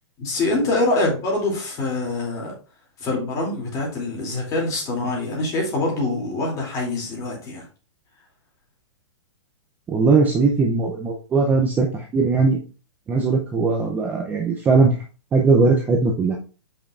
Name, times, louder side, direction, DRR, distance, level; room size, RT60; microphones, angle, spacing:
voice 1, 0.2-2.5 3.0-7.6, left 2 dB, 20° left, -2 dB, 2.7 m, -24 dB
voice 2, 9.9-12.6 13.1-14.9 15.3-16.4, right 4 dB, 10° right, 1 dB, 0.5 m, -19 dB
7.6 x 5.3 x 2.5 m, 0.36 s
hypercardioid pair, 155°, 15 cm